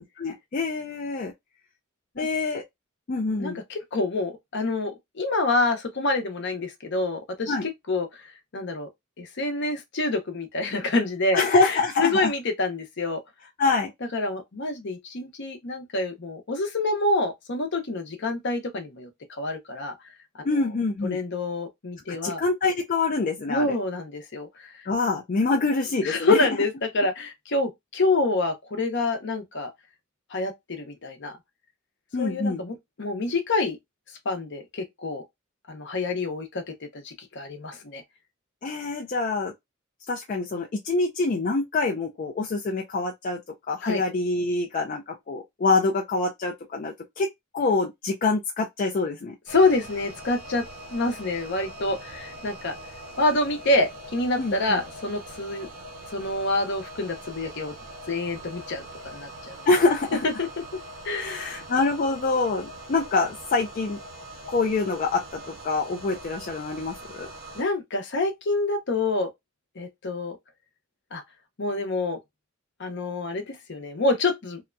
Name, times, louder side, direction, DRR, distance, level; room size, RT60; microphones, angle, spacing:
voice 1, 0.0-1.3 2.2-2.6 3.1-3.6 7.5-7.7 11.3-12.3 13.6-13.9 20.4-21.2 22.1-23.7 24.9-26.5 32.1-32.6 38.6-39.5 40.1-43.4 43.7-47.3 47.5-49.4 54.4-54.8 59.7-60.3 61.2-64.0 64.5-65.2 65.6-67.3, left 3 dB, 40° left, 0.4 m, -25 dB
voice 2, 3.4-7.5 7.9-8.2 8.5-8.9 9.2-13.2 14.1-19.1 19.4-19.9 21.0-22.4 23.5-24.7 26.0-29.7 30.3-30.5 30.8-31.4 32.2-33.8 34.2-35.2 35.7-36.6 36.9-38.0 43.8-44.0 49.5-50.6 50.9-52.7 53.2-55.7 56.1-57.7 58.1-59.6 60.2-60.5 61.0-61.6 67.6-69.3 69.8-70.4 71.1-71.2 71.6-72.2 72.8-74.6, left 2 dB, 60° left, 0.8 m, -27 dB
sound 1, 49.5-67.6, right 1 dB, 85° right, 1.3 m, -42 dB
2.8 x 2.2 x 2.5 m
head